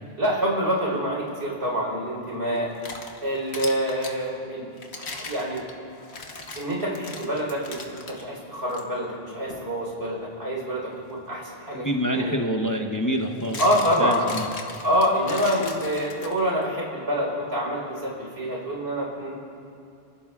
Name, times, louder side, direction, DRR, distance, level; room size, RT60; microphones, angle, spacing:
voice 1, 0.2-2.7 3.2-4.7 5.0-5.6 6.6-7.8 8.1-12.4 13.6-14.4 14.8-19.3, equal, 75° right, -3 dB, 4.3 m, -26 dB
sound 1, 2.6-4.2 4.8-8.2 8.7-8.8 9.5-9.7 11.8-11.9 13.1-16.6, left 3 dB, 80° left, 1.5 m, -39 dB
voice 2, 11.8-13.6 14.0-14.4, equal, 20° left, 2 dB, 0.7 m, -26 dB
29.0 x 15.5 x 2.4 m, 2.5 s
omnidirectional pair, 1.1 m